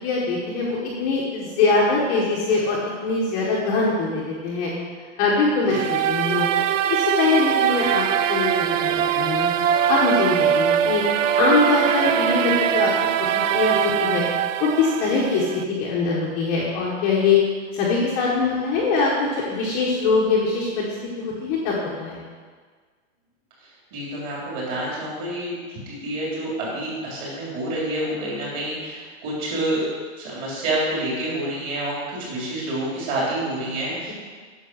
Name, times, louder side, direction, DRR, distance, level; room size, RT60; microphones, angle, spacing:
voice 1, 0.0-4.7 5.2-6.5 6.9-9.5 9.9-11.0 11.3-12.9 13.5-14.2 14.6-15.5 15.8-17.4 17.7-22.2, left 4 dB, 20° left, -5 dB, 1.2 m, -22 dB
sound 1, 5.7-15.6, right 9 dB, 80° right, 0.6 m, -22 dB
voice 2, 23.9-29.8 30.2-34.1, right 1 dB, 30° right, -5 dB, 3.7 m, -28 dB
9.9 x 6.5 x 6.3 m, 1.5 s
supercardioid pair, 175°, 38 cm